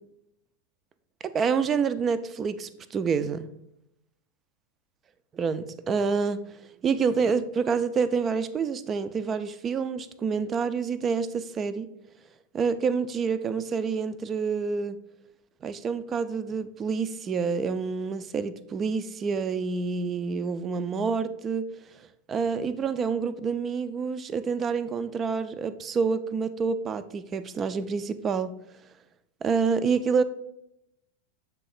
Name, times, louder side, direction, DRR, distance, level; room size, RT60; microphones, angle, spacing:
voice 1, 1.2-3.5 5.3-6.4 6.8-11.9 12.5-15.0 15.6-22.0 22.3-28.5 29.4-30.2, right 5 dB, 25° right, 0.4 m, -28 dB
7.4 x 3.4 x 3.9 m
figure-of-eight pair, 90°, 0 cm